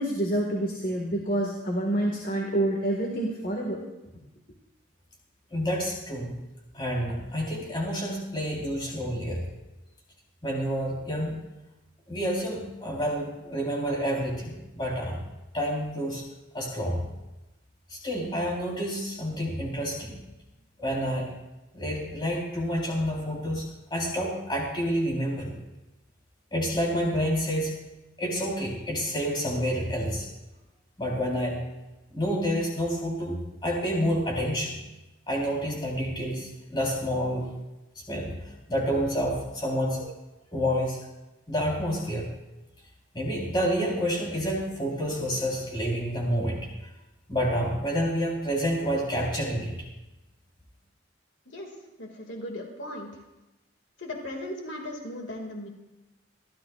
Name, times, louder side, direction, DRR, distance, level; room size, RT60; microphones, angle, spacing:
voice 1, 0.0-3.8, right 1 dB, 45° left, 0 dB, 1.8 m, -27 dB
voice 2, 5.5-6.3 6.7-9.4 10.4-11.4 12.1-15.3 15.5-16.2 16.5-17.1 17.9-20.2 20.8-21.3 21.7-23.6 23.9-25.5 26.5-27.8 28.2-30.3 31.0-31.6 32.1-33.4 33.6-34.8 35.3-37.4 38.1-38.3 38.7-40.1 40.5-41.0 41.5-42.3 43.1-46.6 47.3-49.7, equal, 25° left, -3 dB, 4.0 m, -28 dB
voice 3, 51.5-53.1 54.0-55.7, left 1 dB, 70° left, 1 dB, 2.3 m, -37 dB
27.0 x 13.0 x 2.5 m, 1.0 s
head